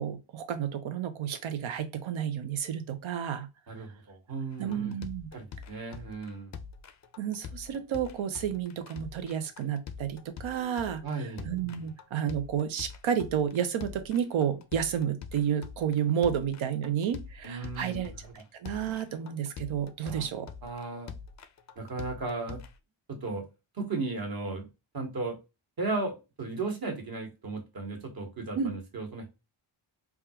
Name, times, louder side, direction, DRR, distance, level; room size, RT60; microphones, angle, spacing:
voice 1, 0.0-3.5 4.6-5.3 7.2-20.5 28.6-28.7, right 8 dB, 75° right, 0.8 m, -31 dB
voice 2, 3.7-4.9 5.3-6.5 11.0-11.5 17.4-18.1 20.0-20.3 20.6-21.1 21.8-22.6 23.1-23.4 23.8-24.6 24.9-25.4 25.8-29.2, right 3 dB, 45° right, 1.4 m, -35 dB
sound 1, 4.5-22.8, left 6 dB, 40° left, 0.4 m, -45 dB
3.5 x 2.4 x 2.8 m
wide cardioid pair, 115°, 49 cm